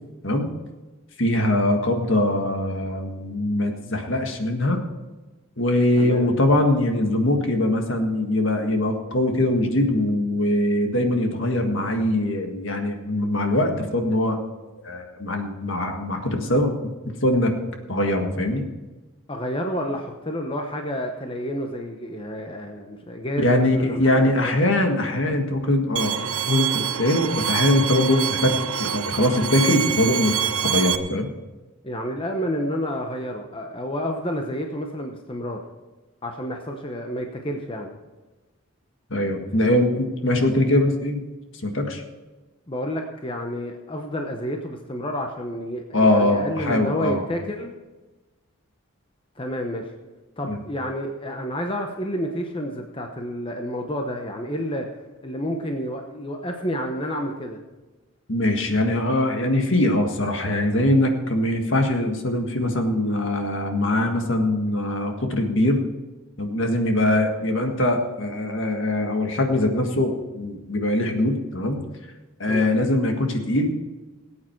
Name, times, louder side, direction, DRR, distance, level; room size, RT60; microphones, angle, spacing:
voice 1, 1.2-4.8 5.6-14.4 14.8-17.6 17.9-18.7 23.4-31.3 39.1-41.2 41.6-42.0 45.9-47.2 50.4-50.6 58.3-65.8 66.4-71.8 72.4-73.8, left 1 dB, 60° left, 4 dB, 1.7 m, -22 dB
voice 2, 6.0-6.3 19.3-24.5 31.8-35.6 36.2-38.0 42.7-47.7 49.4-49.9 50.4-54.9 55.2-57.6 72.4-72.8, equal, 25° left, 3 dB, 0.9 m, -30 dB
Bowed string instrument, 26.0-31.0, right 9 dB, 80° right, 0.8 m, -26 dB
18.5 x 8.7 x 4.6 m, 1.2 s
head